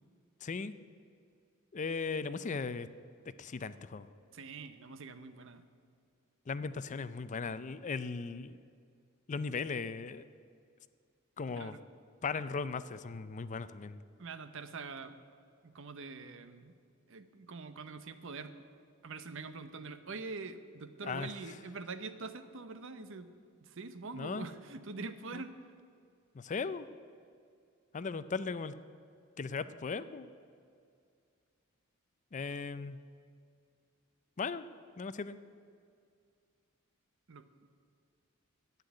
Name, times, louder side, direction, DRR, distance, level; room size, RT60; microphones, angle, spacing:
voice 1, 0.4-0.7 1.7-2.9 3.4-4.1 6.5-8.6 9.3-10.3 11.4-11.8 12.2-14.0 21.0-21.3 24.1-24.5 25.3-25.4 26.3-26.9 27.9-28.7 29.4-30.3 32.3-33.0 34.4-34.7 35.0-35.4, left 4 dB, 35° left, 14 dB, 0.4 m, -37 dB
voice 2, 4.3-5.6 11.5-11.8 14.2-15.1 15.6-16.7 17.1-18.5 19.0-23.3 23.6-25.5 37.3-37.5, right 4 dB, 65° right, 11 dB, 0.8 m, -44 dB
11.5 x 8.3 x 9.7 m, 2.3 s
head